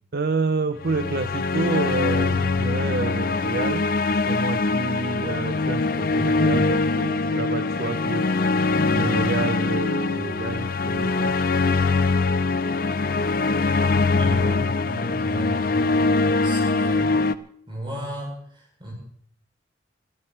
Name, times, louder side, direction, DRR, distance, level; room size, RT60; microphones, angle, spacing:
voice 1, 0.1-8.3 8.9-11.4, right 3 dB, 55° right, 11 dB, 0.5 m, -29 dB
sound 1, 0.8-17.3, left 3 dB, 50° left, 0.5 m, -23 dB
voice 2, 14.1-15.9 16.4-17.1 17.7-18.9, equal, 25° right, -2 dB, 7.9 m, -35 dB
23.5 x 14.0 x 3.2 m, 0.64 s
head